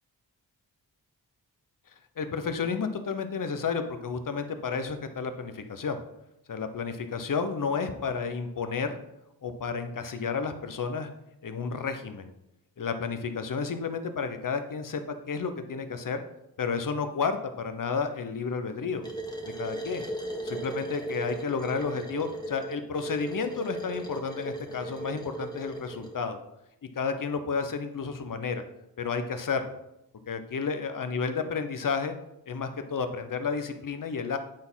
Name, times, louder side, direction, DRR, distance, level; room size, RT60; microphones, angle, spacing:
voice 1, 2.2-6.0 6.5-9.0 9.4-11.1 11.4-12.3 12.8-15.0 15.3-16.2 16.6-19.0 19.6-20.1 20.4-26.4 26.9-28.6 29.0-29.7 30.3-32.1 32.5-34.4, left 5 dB, 55° left, 8 dB, 1.0 m, -31 dB
sound 1, 19.0-26.1, right 2 dB, 10° left, 1.8 m, -37 dB
8.5 x 4.1 x 5.7 m, 0.85 s
cardioid pair, 60°, 38 cm